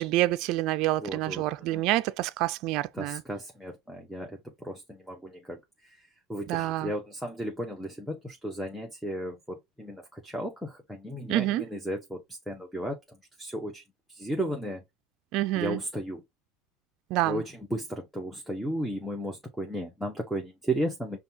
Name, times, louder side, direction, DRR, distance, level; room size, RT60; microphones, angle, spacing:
voice 1, 0.0-3.2 6.5-6.9 11.3-11.6 15.3-15.8 17.1-17.4, right 16 dB, 60° right, 0.4 m, -27 dB
voice 2, 1.0-1.4 1.7-1.8 2.9-5.6 5.8-5.9 6.3-13.0 13.4-13.8 14.1-14.8 15.6-16.2 17.2-21.2, right 1 dB, ahead, 0.9 m, -34 dB
5.3 x 2.3 x 2.8 m
supercardioid pair, 120°, 0 cm